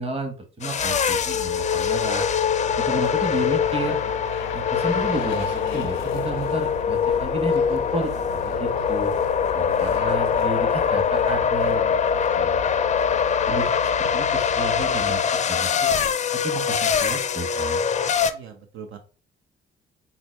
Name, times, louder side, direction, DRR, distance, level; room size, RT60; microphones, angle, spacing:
voice 1, 0.0-2.3 2.8-4.0 4.5-9.1 9.5-12.0 12.3-12.7 13.5-15.9 16.3-17.9, right 2 dB, 30° right, 5 dB, 1.2 m, -32 dB
sound 1, 0.6-18.3, left 7 dB, 35° left, 0.4 m, -23 dB
sound 2, 0.8-15.2, right 3 dB, 50° right, 0.4 m, -40 dB
sound 3, 2.6-16.8, left 10 dB, 85° left, 0.6 m, -41 dB
voice 2, 8.6-8.9 11.6-12.0 18.3-19.0, right 7 dB, 80° right, 5 dB, 0.7 m, -42 dB
3.9 x 2.2 x 4.5 m, 0.37 s
cardioid pair, 90°, 20 cm